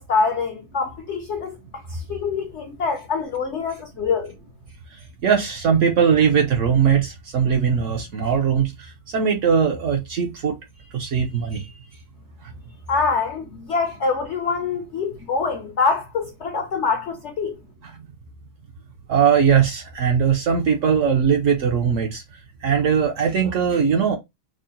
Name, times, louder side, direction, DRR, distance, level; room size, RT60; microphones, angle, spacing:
voice 1, 0.0-1.6 1.9-4.3 12.9-17.6, left 4 dB, 70° left, 0.7 m, -25 dB
voice 2, 5.2-10.6 10.9-11.8 12.4-12.5 17.9-18.1 19.1-22.2 22.6-24.2, right 7 dB, 60° right, 0.8 m, -20 dB
3.7 x 2.1 x 3.8 m
omnidirectional pair, 1.8 m